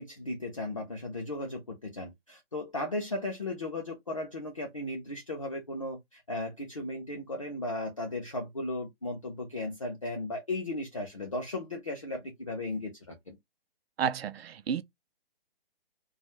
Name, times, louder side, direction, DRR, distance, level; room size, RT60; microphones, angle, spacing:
voice 1, 0.0-13.4, left 2 dB, 35° left, 0.4 m, -36 dB
voice 2, 14.0-14.8, right 8 dB, 80° right, 0.5 m, -31 dB
2.6 x 2.2 x 3.0 m
hypercardioid pair, 175°, 30 cm